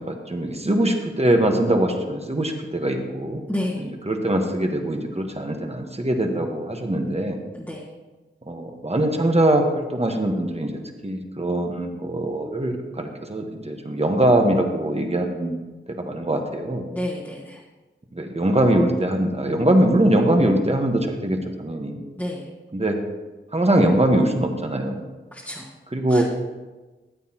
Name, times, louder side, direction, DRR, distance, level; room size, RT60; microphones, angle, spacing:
voice 1, 0.0-3.4 3.7-7.4 8.5-10.7 11.0-15.6 16.0-16.9 18.1-22.0 22.7-23.0 23.5-25.0 25.9-26.2, right 1 dB, 30° right, 3 dB, 1.4 m, -22 dB
voice 2, 3.5-3.8 7.6-7.8 16.9-17.6 22.2-22.4 25.3-25.7 26.1-26.2, left 1 dB, 10° left, -6 dB, 1.7 m, -30 dB
13.5 x 8.5 x 3.0 m, 1.2 s
cardioid pair, 40°, 20 cm